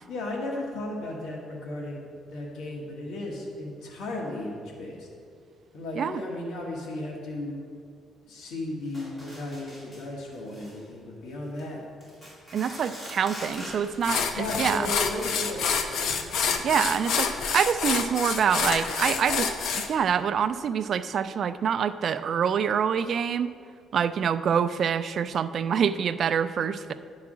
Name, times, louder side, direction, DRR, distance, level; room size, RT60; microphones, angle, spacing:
voice 1, 0.1-5.1 5.7-7.6 8.3-11.8 13.6-13.7 14.3-16.6, left 1 dB, 80° left, -3 dB, 1.5 m, -35 dB
sound 1, 8.9-10.0 10.3-10.8 11.4-11.6 12.0-14.0, equal, 15° left, 2.2 m, -43 dB
voice 2, 12.5-14.9 16.6-23.5 23.9-26.9, right 7 dB, 45° right, 13 dB, 0.3 m, -26 dB
sound 2, 13.5-13.7 14.0-19.9, left 6 dB, 65° left, 0.6 m, -28 dB
9.7 x 4.7 x 6.1 m, 2.2 s
cardioid pair, 155°, 0 cm